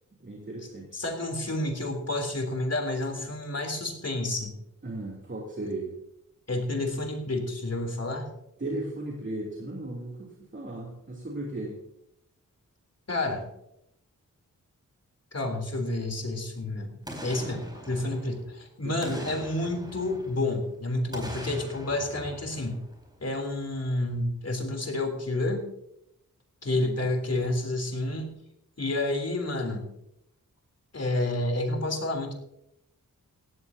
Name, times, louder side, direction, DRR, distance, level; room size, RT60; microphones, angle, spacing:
voice 1, 0.2-1.0 4.8-5.9 8.6-11.8 18.8-19.2 26.7-27.1, right 2 dB, 35° right, -3 dB, 3.0 m, -36 dB
voice 2, 0.9-4.6 6.5-8.3 13.1-13.5 15.3-17.0 17.2-22.8 23.2-25.7 26.6-28.3 28.8-29.9 30.9-32.3, left 2 dB, 50° left, 4 dB, 3.4 m, -30 dB
Boom, 17.0-18.6 19.0-20.6 21.1-23.4 23.7-23.8, equal, 10° right, 4.5 m, -42 dB
17.0 x 14.0 x 2.8 m, 0.79 s
cardioid pair, 60°, 33 cm